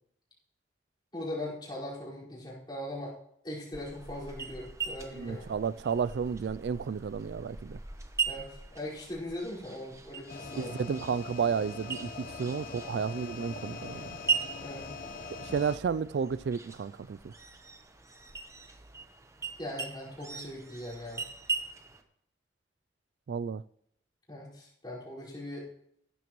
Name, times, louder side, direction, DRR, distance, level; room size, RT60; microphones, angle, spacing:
voice 1, 1.1-3.1 3.4-5.4 8.3-10.8 14.6-14.9 19.6-21.2 24.3-25.7, left 1 dB, 25° left, 4.9 m, -40 dB
sound 1, 3.7-22.0, right 5 dB, 15° right, 0.9 m, -40 dB
voice 2, 5.2-7.8 10.6-14.2 15.4-17.3 23.3-23.6, right 6 dB, 70° right, 0.3 m, -32 dB
sound 2, 10.3-15.8, left 4 dB, 50° left, 0.9 m, -42 dB
15.5 x 12.5 x 3.1 m
head